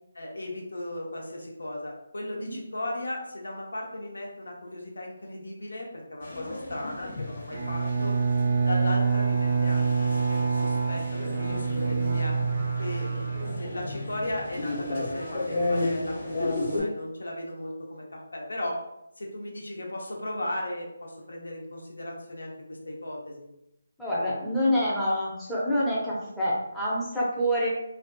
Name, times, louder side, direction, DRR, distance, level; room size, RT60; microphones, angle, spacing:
voice 1, 0.1-8.2 8.7-12.3 12.8-13.3 13.6-18.8 19.2-23.5, left 1 dB, 80° left, -1 dB, 0.7 m, -36 dB
sound 1, 6.2-16.8, left 2 dB, 45° left, 1.2 m, -34 dB
Bowed string instrument, 7.5-14.1, right 5 dB, 45° right, 0.5 m, -26 dB
voice 2, 24.0-27.7, equal, ahead, -10 dB, 0.6 m, -27 dB
2.5 x 2.3 x 2.2 m, 0.84 s
figure-of-eight pair, 155°, 0 cm